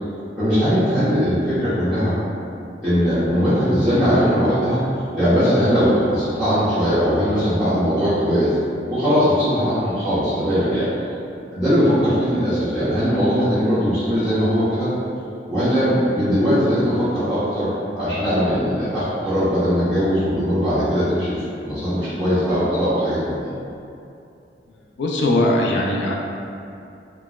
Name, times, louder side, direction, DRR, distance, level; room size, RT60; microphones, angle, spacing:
voice 1, 0.4-2.2 2.8-4.8 5.1-8.6 8.9-10.9 11.5-14.9 15.5-21.3 21.6-23.5, equal, ahead, -19 dB, 1.0 m, -20 dB
voice 2, 25.0-26.1, left 1 dB, 85° left, -1 dB, 0.4 m, -19 dB
3.9 x 2.3 x 2.3 m, 2.6 s
head